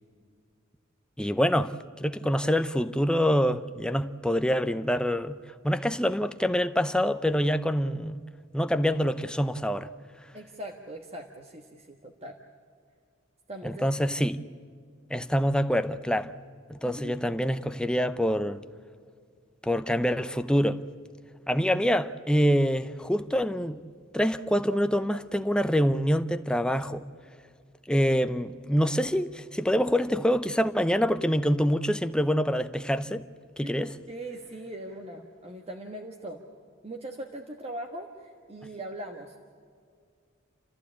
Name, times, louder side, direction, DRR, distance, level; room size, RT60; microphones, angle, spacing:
voice 1, 1.2-5.4 5.6-8.2 8.5-9.9 13.6-14.4 15.1-16.4 16.7-18.6 19.6-20.8 21.5-23.8 24.1-27.0 27.9-33.3 33.6-33.9, equal, 5° left, 0.6 m, -26 dB
voice 2, 10.3-12.4 13.5-13.8 16.8-17.2 33.6-33.7 34.1-36.4 36.8-39.4, right 1 dB, 30° right, 1.4 m, -40 dB
29.5 x 14.5 x 8.5 m
head